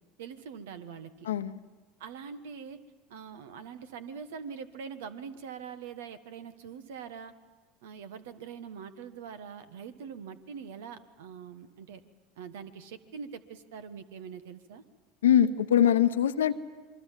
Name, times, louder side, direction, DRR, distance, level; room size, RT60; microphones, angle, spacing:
voice 1, 0.2-1.1 2.0-2.8 3.1-7.3 7.8-12.0 12.4-14.8, right 6 dB, 75° right, 11 dB, 1.4 m, -43 dB
voice 2, 1.2-1.6 15.2-16.5, left 10 dB, 80° left, 12 dB, 0.9 m, -23 dB
27.0 x 22.5 x 7.5 m, 1.3 s
hypercardioid pair, 80°, 0 cm